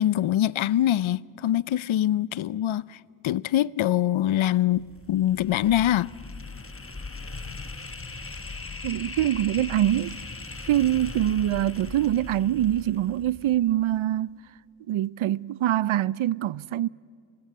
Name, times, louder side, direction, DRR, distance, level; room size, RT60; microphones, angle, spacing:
voice 1, 0.0-3.0 3.2-6.1, left 12 dB, 70° left, 0.6 m, -24 dB
sound 1, 4.7-13.8, left 3 dB, 25° left, 1.5 m, -39 dB
voice 2, 8.8-10.2 10.7-14.3 14.9-16.9, right 13 dB, 75° right, 0.6 m, -24 dB
25.0 x 20.0 x 9.7 m
cardioid pair, 55°, 50 cm